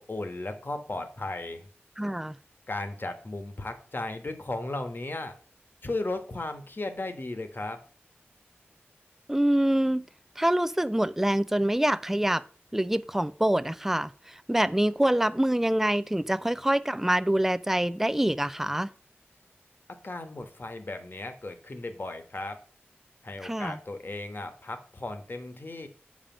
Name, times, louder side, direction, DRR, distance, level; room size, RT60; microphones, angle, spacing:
voice 1, 0.0-1.7 2.7-5.3 5.8-7.8 20.0-22.6 23.2-25.9, left 2 dB, 55° left, 1.3 m, -35 dB
voice 2, 2.0-2.3 9.3-10.0 10.4-12.4 12.7-18.9 23.4-23.8, right 1 dB, 10° right, 0.4 m, -25 dB
7.4 x 5.0 x 5.9 m
wide cardioid pair, 50°, 4 cm